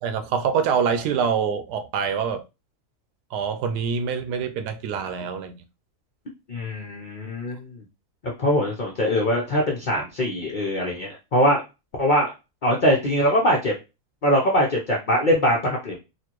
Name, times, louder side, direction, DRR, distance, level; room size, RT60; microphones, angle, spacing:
voice 1, 0.0-2.4 3.3-5.6, right 6 dB, 85° right, 1.2 m, -25 dB
voice 2, 6.5-7.8 8.4-11.6 12.0-12.3 12.6-13.7 14.2-15.9, equal, 45° left, 0.7 m, -22 dB
4.2 x 2.5 x 3.0 m
omnidirectional pair, 1.7 m